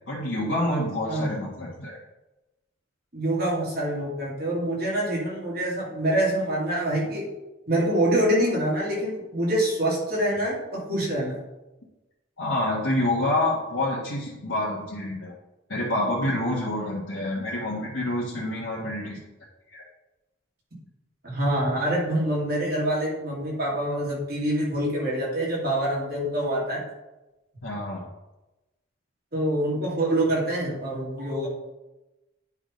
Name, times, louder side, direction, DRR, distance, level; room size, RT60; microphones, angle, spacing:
voice 1, 0.1-2.0 12.4-15.3 15.7-19.2 19.7-19.8 27.6-28.0, left 1 dB, 70° left, -6 dB, 1.5 m, -27 dB
voice 2, 3.1-7.3 7.7-11.4 21.2-26.8 29.3-31.5, right 1 dB, 50° right, -5 dB, 2.8 m, -25 dB
9.8 x 3.6 x 5.1 m, 1.0 s
head